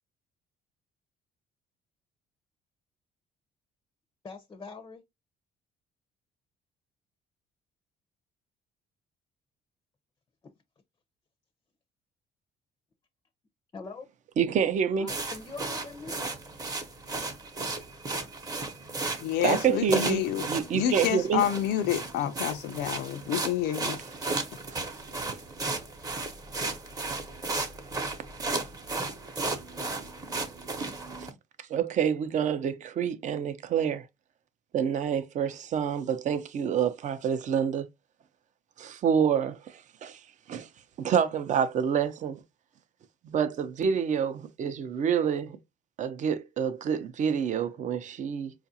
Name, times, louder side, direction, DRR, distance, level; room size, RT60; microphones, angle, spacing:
voice 1, 4.2-5.0 13.7-14.1 15.0-16.2, left 4 dB, 20° left, 0.5 m, -42 dB
voice 2, 14.4-15.1 19.4-21.4 31.6-34.0 34.7-37.9 38.8-40.2 40.5-40.7 41.0-42.4 43.2-45.6 46.0-48.5, right 7 dB, 50° right, 0.6 m, -27 dB
sound 1, 15.1-31.3, right 3 dB, 20° right, 0.8 m, -34 dB
voice 3, 19.2-20.4 20.7-24.0, left 11 dB, 85° left, 0.4 m, -28 dB
4.7 x 2.4 x 2.7 m
cardioid pair, 125°, 17 cm